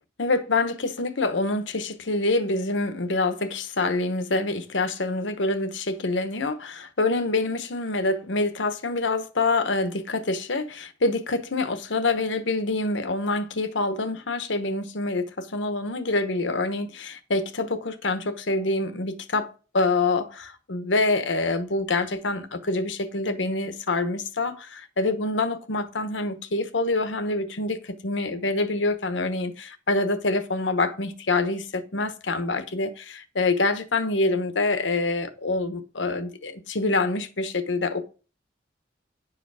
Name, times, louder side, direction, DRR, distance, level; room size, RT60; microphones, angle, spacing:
voice 1, 0.2-38.1, left 2 dB, 80° left, 1.1 m, -26 dB
10.0 x 4.9 x 4.9 m
head